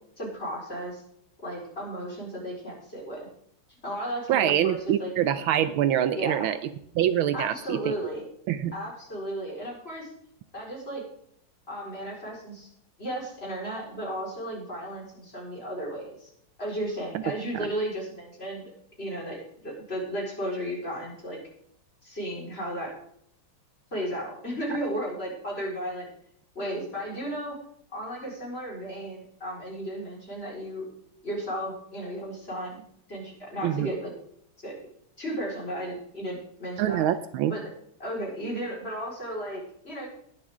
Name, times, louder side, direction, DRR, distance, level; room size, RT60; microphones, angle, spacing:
voice 1, 0.2-1.0 1.4-3.3 3.7-5.1 6.1-6.5 7.3-8.3 8.7-10.1 10.5-11.0 11.7-12.7 13.0-16.3 16.6-18.7 19.0-21.4 22.0-22.9 23.9-26.1 26.5-27.6 27.9-30.9 31.2-32.8 33.1-34.1 34.6-34.8 35.2-37.0 37.5-37.7 38.0-40.1, equal, 25° left, -4 dB, 4.8 m, -34 dB
voice 2, 4.3-6.6 6.9-8.0 8.5-8.7 17.1-17.2 17.5-17.7 33.6-33.9 36.8-37.5, right 11 dB, 75° right, 12 dB, 1.4 m, -25 dB
20.0 x 7.4 x 3.6 m, 0.69 s
omnidirectional pair, 2.4 m